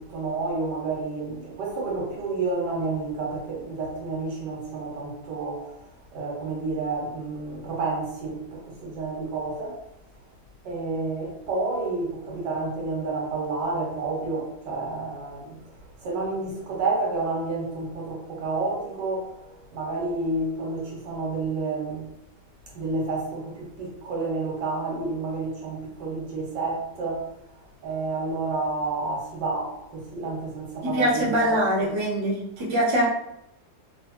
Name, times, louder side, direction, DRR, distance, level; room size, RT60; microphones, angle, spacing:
voice 1, 0.0-5.7 6.1-9.8 10.6-15.6 16.0-22.1 22.7-27.3 27.8-31.9, right 3 dB, 75° right, 1.6 m, -30 dB
voice 2, 30.8-33.1, equal, 30° right, 0.5 m, -23 dB
3.0 x 2.6 x 3.0 m
omnidirectional pair, 1.9 m